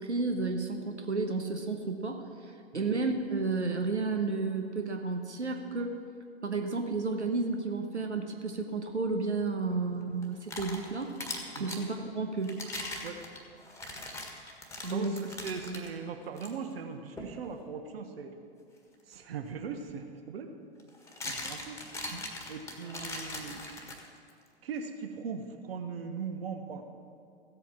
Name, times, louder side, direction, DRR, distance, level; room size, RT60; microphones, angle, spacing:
voice 1, 0.0-5.9 6.4-11.1 11.6-12.6 14.8-15.2 15.7-15.8 22.1-22.2, right 3 dB, 85° right, 4 dB, 1.1 m, -32 dB
sound 1, 10.2-11.9 12.4-15.9 16.4-16.5 17.2-17.4 19.5-19.6 20.8-24.3, left 2 dB, 10° left, 1.5 m, -40 dB
voice 2, 14.9-18.3 19.1-20.5 21.2-21.8 22.5-23.7 24.6-26.9, right 5 dB, 60° right, 6 dB, 1.2 m, -39 dB
15.5 x 8.2 x 5.9 m, 2.5 s
figure-of-eight pair, 100°, 33 cm